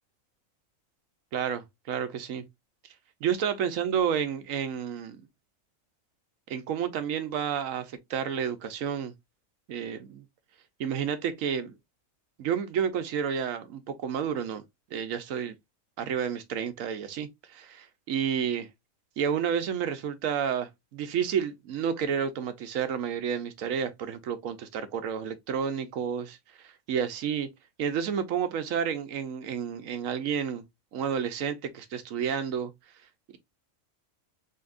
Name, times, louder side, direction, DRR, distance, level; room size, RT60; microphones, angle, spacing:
voice 1, 1.3-2.4 3.2-5.2 6.5-9.1 9.7-10.2 10.8-11.8 12.4-14.6 14.9-15.6 16.0-18.7 19.2-27.5 27.8-30.6 30.9-32.7, right 8 dB, 80° right, 1.1 m, -30 dB
5.2 x 2.8 x 2.5 m
omnidirectional pair, 1.4 m